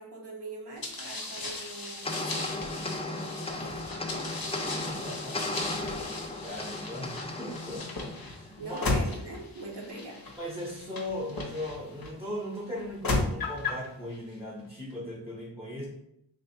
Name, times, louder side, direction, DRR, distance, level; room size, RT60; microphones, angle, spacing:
voice 1, 0.0-4.3 8.6-10.3, right 2 dB, 65° right, -2 dB, 0.9 m, -43 dB
sound 1, 0.8-12.1 12.8-13.9, left 2 dB, 55° left, 0.7 m, -35 dB
sound 2, 2.1-8.7, left 2 dB, 15° left, 0.3 m, -36 dB
voice 2, 4.9-6.1 6.4-8.9 10.4-15.9, left 1 dB, 5° right, -3 dB, 0.8 m, -38 dB
3.4 x 2.1 x 4.1 m, 0.77 s
wide cardioid pair, 45°, 44 cm